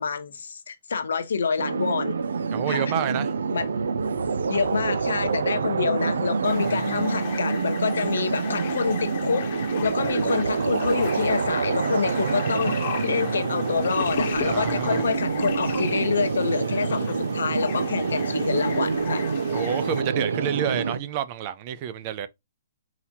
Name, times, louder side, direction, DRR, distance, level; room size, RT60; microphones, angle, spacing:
voice 1, 0.0-2.2 2.7-2.9 3.5-3.7 4.5-9.5 9.8-12.8 13.0-19.2, left 5 dB, 90° left, 0.9 m, -27 dB
sound 1, 1.6-21.0, right 5 dB, 90° right, 0.5 m, -27 dB
voice 2, 2.5-3.3 6.8-7.0 14.4-15.1 19.5-22.3, right 9 dB, 30° right, 0.5 m, -29 dB
sound 2, 6.4-20.0, left 8 dB, 40° left, 0.9 m, -36 dB
sound 3, 14.2-19.0, right 4 dB, 70° right, 1.1 m, -41 dB
4.2 x 4.0 x 2.7 m
hypercardioid pair, 165°, 0 cm